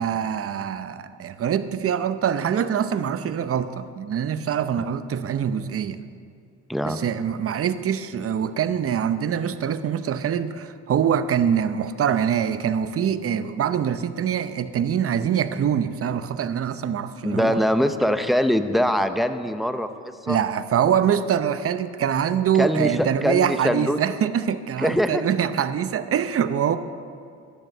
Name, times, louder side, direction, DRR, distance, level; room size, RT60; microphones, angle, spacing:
voice 1, 0.0-6.0 6.8-17.6 20.3-26.8, right 8 dB, 50° right, 12 dB, 0.7 m, -24 dB
voice 2, 17.2-19.9 20.3-20.4 22.6-24.0 24.8-25.2, equal, ahead, 9 dB, 0.7 m, -22 dB
12.0 x 10.5 x 6.6 m, 2.3 s
cardioid pair, 90°, 30 cm